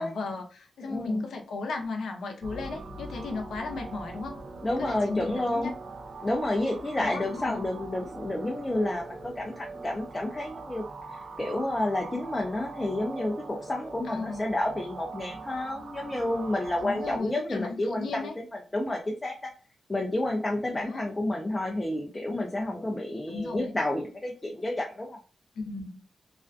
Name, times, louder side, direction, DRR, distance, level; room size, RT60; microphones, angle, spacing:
voice 1, 0.0-4.4 4.8-5.8 7.0-7.6 14.1-14.5 16.8-18.4 20.7-21.1 23.3-23.8 25.6-26.0, left 3 dB, 90° left, 3 dB, 0.5 m, -35 dB
voice 2, 0.9-1.2 4.6-5.7 6.2-18.2 18.7-19.3 19.9-25.2, left 1 dB, 20° left, 0 dB, 0.4 m, -30 dB
sound 1, 2.4-17.2, right 3 dB, 55° right, 0.4 m, -42 dB
2.4 x 2.2 x 2.4 m, 0.37 s
wide cardioid pair, 120°, 0 cm